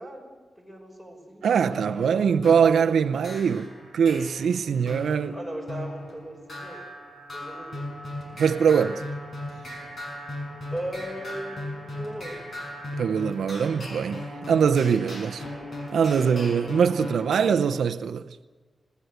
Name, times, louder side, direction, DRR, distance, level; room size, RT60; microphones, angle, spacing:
voice 1, 0.0-1.5 4.9-5.0 5.3-6.9 7.3-7.8 10.7-12.4 16.1-16.7, right 1 dB, 5° left, 5.6 m, -38 dB
voice 2, 1.4-5.4 8.4-9.0 13.0-14.2 14.5-15.4 15.9-18.3, right 7 dB, 90° right, 0.7 m, -22 dB
sound 1, 1.7-17.5, left 1 dB, 45° left, 6.2 m, -38 dB
27.0 x 18.5 x 8.1 m
wide cardioid pair, 150°, 0 cm